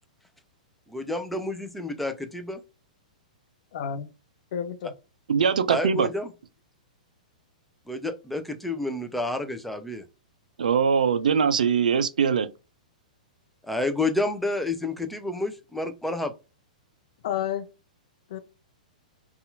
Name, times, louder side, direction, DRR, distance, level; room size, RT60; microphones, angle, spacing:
voice 1, 0.9-2.6 5.7-6.3 7.9-10.0 13.6-16.3, left 2 dB, ahead, 0.4 m, -29 dB
voice 2, 3.7-4.1 4.5-4.9 17.2-17.6 18.3-18.4, left 9 dB, 55° left, 0.5 m, -30 dB
voice 3, 5.3-6.1 10.6-12.5, right 6 dB, 75° right, 0.3 m, -22 dB
2.7 x 2.3 x 2.5 m
figure-of-eight pair, 110°, 4 cm